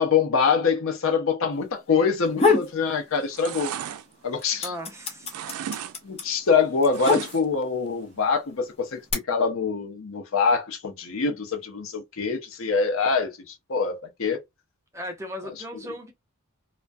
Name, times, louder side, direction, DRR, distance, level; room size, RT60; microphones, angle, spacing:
voice 1, 0.0-3.7 4.2-4.7 6.0-9.0 9.3-14.4, left 5 dB, 70° left, 0.6 m, -24 dB
sound 1, 2.1-2.8 3.2-3.9 4.1-7.7 8.5-9.1, left 3 dB, 30° left, 0.6 m, -25 dB
sound 2, 2.6-2.9 3.2-4.9 5.2-6.0 6.2-7.6 8.0-8.1, right 9 dB, 90° right, 0.3 m, -36 dB
voice 2, 4.6-5.5 14.9-16.1, equal, 15° right, 0.6 m, -37 dB
2.3 x 2.1 x 2.5 m
head